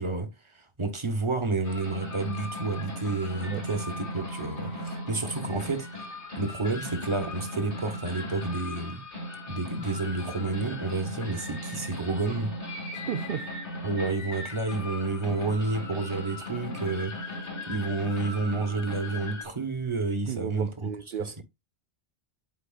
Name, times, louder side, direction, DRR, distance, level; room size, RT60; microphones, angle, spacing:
voice 1, 0.0-5.9 6.3-9.0 9.5-12.5 13.8-17.3 17.7-20.9 21.2-21.3, right 3 dB, 25° right, 1.3 m, -30 dB
sound 1, 1.6-19.4, left 1 dB, 70° left, 2.5 m, -37 dB
voice 2, 12.9-13.5 20.3-21.4, right 9 dB, 55° right, 0.7 m, -34 dB
11.5 x 4.8 x 2.5 m
omnidirectional pair, 1.2 m